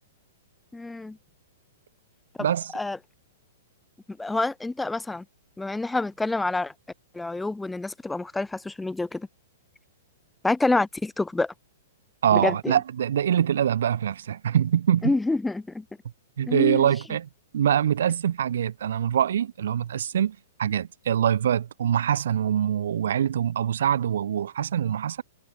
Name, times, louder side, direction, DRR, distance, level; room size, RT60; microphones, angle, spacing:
voice 1, 0.7-1.2 2.4-2.5 2.7-3.0 4.1-5.2 5.6-6.7 7.1-9.3 10.4-11.5 12.3-12.8 15.0-15.8 16.5-16.9, left 2 dB, 5° left, 2.0 m, -27 dB
voice 2, 2.4-2.7 12.2-15.1 16.4-25.2, right 9 dB, 75° right, 2.1 m, -24 dB
hypercardioid pair, 160°, 0 cm